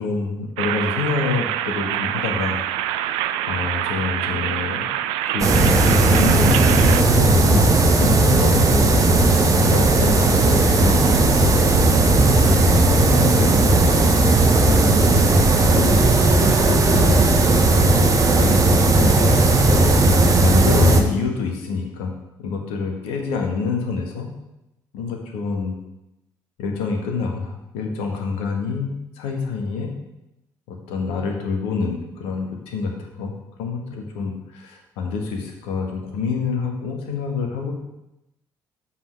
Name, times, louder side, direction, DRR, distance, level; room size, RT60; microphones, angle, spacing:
voice 1, 0.0-4.9 5.2-9.0 9.6-11.7 12.6-14.1 14.6-17.4 18.3-20.1 20.4-22.1 22.4-24.3 24.9-25.8 26.6-30.0 30.7-33.3 33.6-37.7, left 4 dB, 65° left, 2 dB, 1.3 m, -27 dB
sound 1, 0.6-7.0, right 12 dB, 65° right, 0.4 m, -25 dB
sound 2, 5.4-21.0, right 2 dB, 30° right, 1.1 m, -16 dB
7.4 x 4.2 x 6.3 m, 0.91 s
figure-of-eight pair, 45°, 11 cm